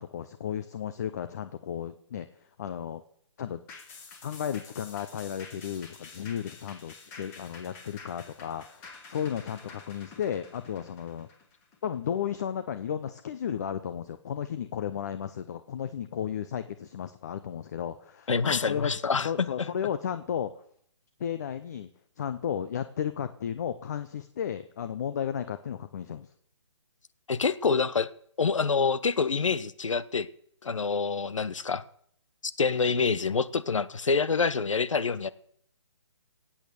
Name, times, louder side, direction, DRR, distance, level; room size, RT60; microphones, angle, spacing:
voice 1, 0.0-2.3 2.6-3.0 3.4-3.6 4.2-11.3 11.8-18.9 19.2-20.6 21.2-21.9 22.2-26.3, left 8 dB, 35° left, 0.7 m, -34 dB
sound 1, 3.7-12.4 12.8-12.9, left 4 dB, 15° left, 1.6 m, -49 dB
voice 2, 18.3-19.7 27.3-28.1 28.4-30.3 30.6-31.8 32.6-35.3, left 5 dB, 85° left, 1.1 m, -26 dB
18.0 x 8.7 x 6.9 m
hypercardioid pair, 165°, 16 cm